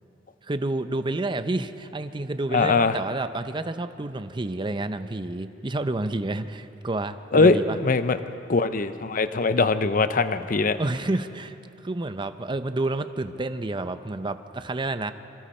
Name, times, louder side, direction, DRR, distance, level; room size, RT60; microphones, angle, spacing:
voice 1, 0.4-7.8 10.8-11.6 11.8-15.1, right 2 dB, 25° right, 10 dB, 0.6 m, -29 dB
voice 2, 2.5-3.0 7.3-7.6 7.8-8.2 8.5-10.8, left 3 dB, 45° left, 11 dB, 0.7 m, -21 dB
25.5 x 24.0 x 4.4 m, 2.8 s
head